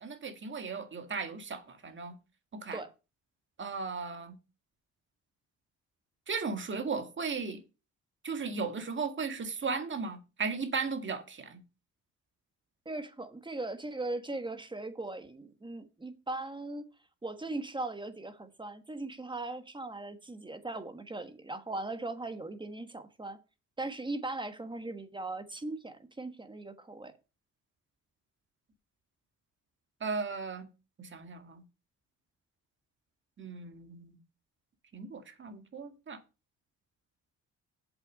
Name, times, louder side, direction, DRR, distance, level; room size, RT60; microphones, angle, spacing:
voice 1, 0.0-2.2 2.5-2.8 3.6-4.4 6.3-7.6 8.2-11.6 30.0-30.7 31.0-31.6 33.4-34.2 34.9-36.2, right 5 dB, 40° right, 1.9 m, -36 dB
voice 2, 12.8-16.8 17.2-23.4 23.8-27.1, right 2 dB, 15° right, 1.4 m, -39 dB
7.7 x 5.8 x 6.4 m
cardioid pair, 90°, 30 cm